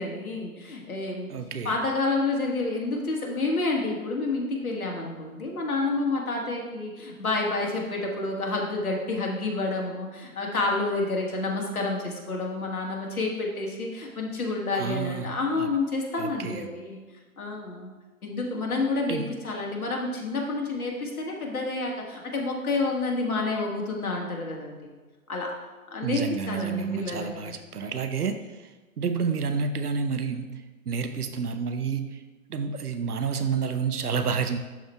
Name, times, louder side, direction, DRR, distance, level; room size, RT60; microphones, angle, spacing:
voice 1, 0.0-1.3 1.7-17.0 17.4-17.9 18.2-25.0 25.3-25.5 25.9-27.6, left 3 dB, 75° left, 0 dB, 1.7 m, -29 dB
voice 2, 1.3-1.8 14.7-15.7 16.2-16.7 19.1-19.3 26.0-28.7 29.0-30.5 30.9-32.2 32.5-34.6, right 5 dB, 85° right, 7 dB, 0.7 m, -29 dB
11.5 x 4.3 x 2.3 m, 1.3 s
figure-of-eight pair, 130°, 45 cm